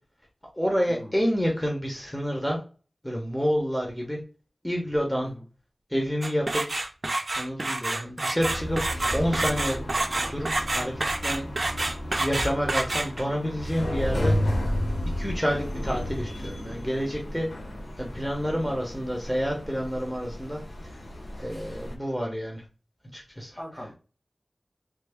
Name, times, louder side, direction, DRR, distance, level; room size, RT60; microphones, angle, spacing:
voice 1, 0.5-2.6 3.0-4.2 4.6-5.3 5.9-6.8 7.4-8.8 9.1-9.8 10.1-10.9 11.2-11.5 12.2-14.3 15.2-17.5 18.0-20.9 21.4-22.6 23.1-23.5, equal, 5° left, 0 dB, 0.9 m, -28 dB
sound 1, 6.2-13.4, right 2 dB, 55° right, 0.5 m, -28 dB
sound 2, 8.4-22.0, left 1 dB, 85° left, 0.8 m, -33 dB
voice 2, 18.4-18.9 23.5-23.9, left 1 dB, 30° left, 0 dB, 1.3 m, -42 dB
3.3 x 2.2 x 3.5 m, 0.36 s
wide cardioid pair, 50°, 0 cm